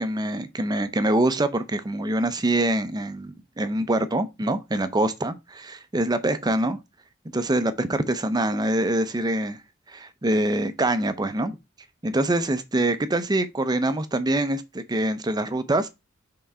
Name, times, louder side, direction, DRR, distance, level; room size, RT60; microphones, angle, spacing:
voice 1, 0.0-6.8 7.3-9.6 9.9-11.5 12.0-15.9, right 1 dB, 20° right, 0.6 m, -24 dB
5.8 x 3.8 x 4.3 m
head